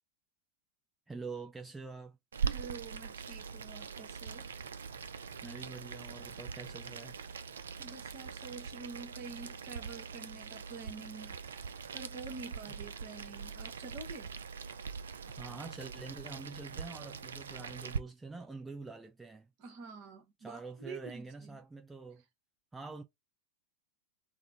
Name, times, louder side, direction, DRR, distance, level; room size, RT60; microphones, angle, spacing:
voice 1, 1.1-2.2 5.4-7.2 15.3-19.5 20.4-22.2 22.7-23.0, right 4 dB, 10° right, 0.5 m, -46 dB
Boiling, 2.3-18.0, right 6 dB, 65° right, 0.4 m, -42 dB
voice 2, 2.4-4.5 7.8-11.4 11.9-14.3 19.6-21.6, right 4 dB, 45° right, 1.1 m, -47 dB
3.6 x 2.1 x 4.4 m
figure-of-eight pair, 90°, 0 cm